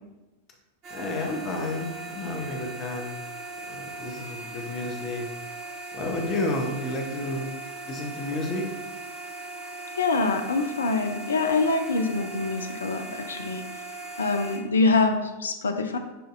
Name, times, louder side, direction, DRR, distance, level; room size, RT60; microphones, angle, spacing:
sound 1, 0.8-14.6, right 2 dB, 40° right, 1.4 m, -39 dB
voice 1, 0.9-3.1 3.7-5.3 5.9-7.5 7.9-8.7, left 2 dB, 35° left, 1 dB, 0.7 m, -31 dB
voice 2, 10.0-13.6 14.2-16.0, left 3 dB, 70° left, 6 dB, 0.4 m, -25 dB
6.8 x 2.6 x 2.5 m, 1.1 s
figure-of-eight pair, 90°, 0 cm